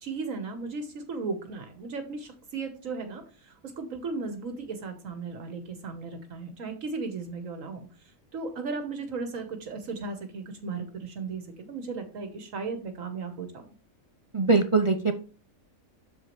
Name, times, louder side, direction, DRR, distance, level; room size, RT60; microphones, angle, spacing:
voice 1, 0.0-13.7, right 4 dB, 70° right, 7 dB, 1.4 m, -36 dB
voice 2, 14.3-15.1, right 4 dB, 45° right, 7 dB, 0.4 m, -22 dB
8.1 x 6.8 x 3.0 m, 0.38 s
omnidirectional pair, 1.4 m